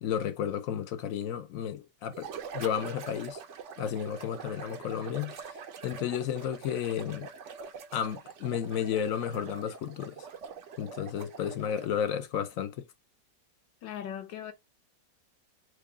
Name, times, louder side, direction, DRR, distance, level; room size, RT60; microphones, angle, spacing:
voice 1, 0.0-3.4 3.8-5.5 5.8-7.3 7.9-10.3 10.8-12.8, left 9 dB, 65° left, 0.8 m, -32 dB
sound 1, 2.1-12.0, right 6 dB, 65° right, 0.7 m, -44 dB
voice 2, 13.8-14.5, left 10 dB, 85° left, 1.6 m, -38 dB
4.7 x 2.3 x 4.7 m
omnidirectional pair, 1.9 m